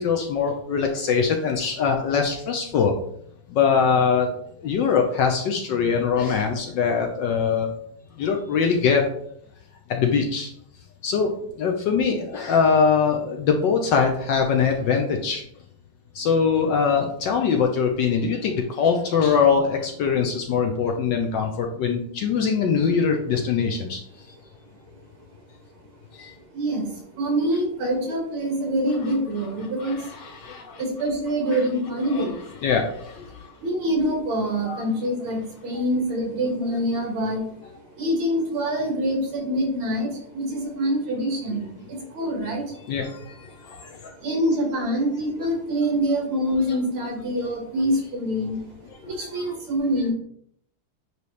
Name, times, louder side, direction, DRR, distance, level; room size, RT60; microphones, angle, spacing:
voice 1, 0.0-2.9 3.5-4.3 4.6-7.7 8.2-9.0 9.9-10.5 11.0-11.3 11.6-15.4 16.1-24.0 26.1-26.3 29.8-30.8 31.5-31.6 32.1-32.3 32.6-33.3 34.7-34.8 36.6-36.7 42.9-44.1 49.0-49.1, left 6 dB, 70° left, 3 dB, 1.2 m, -22 dB
voice 2, 26.3-32.6 33.6-43.0 44.0-50.1, equal, 70° right, 0 dB, 2.5 m, -26 dB
9.4 x 3.2 x 3.2 m, 0.68 s
omnidirectional pair, 2.4 m